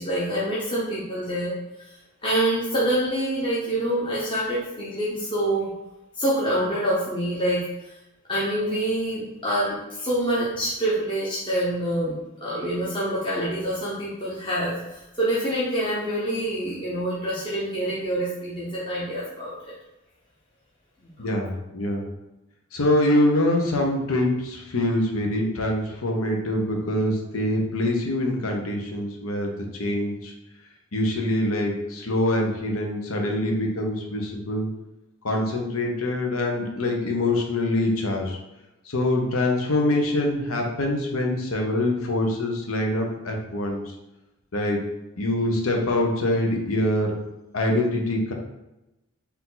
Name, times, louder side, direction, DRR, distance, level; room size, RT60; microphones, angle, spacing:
voice 1, 0.0-1.5 1.8-1.9 2.2-5.7 6.2-7.9 8.3-12.1 12.4-19.7 21.0-21.3, right 1 dB, 25° left, -8 dB, 0.8 m, -26 dB
voice 2, 21.2-22.0 22.7-30.3 30.9-34.7 35.2-38.4 38.9-43.8 44.5-44.8 45.2-47.2 47.5-48.3, left 1 dB, 85° left, 1 dB, 0.9 m, -24 dB
4.6 x 2.7 x 3.9 m, 0.95 s
head